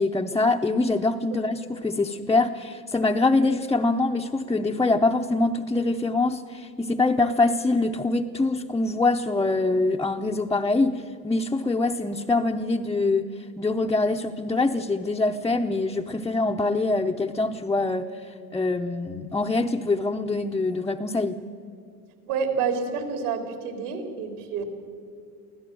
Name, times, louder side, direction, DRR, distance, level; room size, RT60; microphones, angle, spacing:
voice 1, 0.0-13.3 13.6-21.4, left 3 dB, 5° left, 0 dB, 0.6 m, -24 dB
voice 2, 22.3-24.6, right 6 dB, 75° right, 5 dB, 4.1 m, -28 dB
24.5 x 16.0 x 7.7 m, 2.4 s
supercardioid pair, 115°, 45 cm